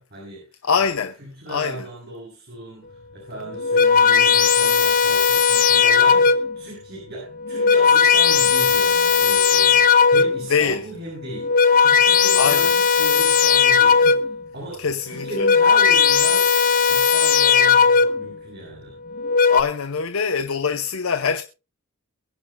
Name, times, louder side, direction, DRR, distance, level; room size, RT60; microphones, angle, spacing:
voice 1, 0.0-14.3 14.5-16.5 16.9-19.0, right 1 dB, 50° right, 6.9 m, -36 dB
voice 2, 0.6-1.1 1.5-1.8 10.5-10.8 12.4-12.7 14.0-14.2 14.8-15.5 19.5-21.4, left 6 dB, 85° left, 0.7 m, -23 dB
sound 1, 3.4-6.6 7.4-10.5 11.3-14.4 15.2-18.3 19.1-19.6, left 6 dB, 45° left, 0.7 m, -17 dB
23.0 x 10.0 x 2.2 m
head